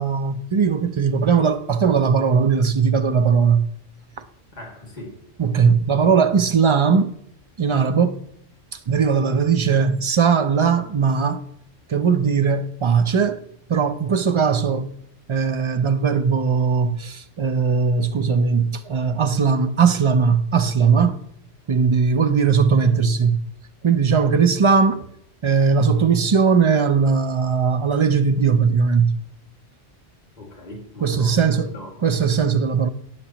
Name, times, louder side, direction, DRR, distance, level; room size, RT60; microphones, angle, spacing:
voice 1, 0.0-3.7 5.4-7.1 7.6-8.2 8.7-11.4 11.9-13.4 13.7-15.0 15.3-21.2 21.7-23.4 23.8-25.1 25.4-29.1 31.0-31.7 32.0-32.9, right 6 dB, 50° right, 0.3 m, -19 dB
voice 2, 4.5-5.2 22.9-23.1 30.4-31.9, left 1 dB, 35° left, 2.1 m, -39 dB
18.0 x 6.7 x 2.9 m
omnidirectional pair, 1.3 m